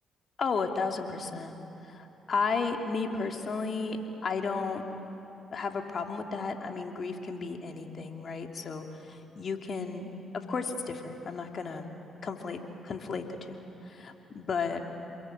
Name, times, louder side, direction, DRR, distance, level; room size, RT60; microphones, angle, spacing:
voice 1, 0.4-1.6 1.8-4.8 5.5-11.9 12.2-12.6 12.8-14.8, left 4 dB, 55° left, 3 dB, 2.8 m, -33 dB
27.5 x 21.5 x 9.3 m, 3.0 s
hypercardioid pair, 50°, 0 cm